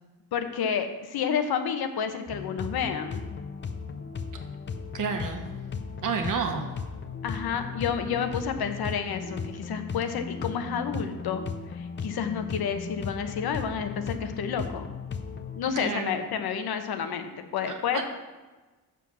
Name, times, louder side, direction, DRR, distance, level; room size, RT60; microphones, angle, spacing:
voice 1, 0.3-3.3 7.2-11.4 11.7-14.9 15.6-18.0, left 7 dB, 80° left, 7 dB, 1.0 m, -30 dB
sound 1, 2.3-15.6, left 5 dB, 30° left, 0.6 m, -36 dB
voice 2, 4.9-5.4 6.0-6.7 15.7-16.2 17.9-18.0, right 5 dB, 55° right, 5 dB, 1.3 m, -29 dB
7.8 x 7.1 x 6.2 m, 1.2 s
wide cardioid pair, 175°, 37 cm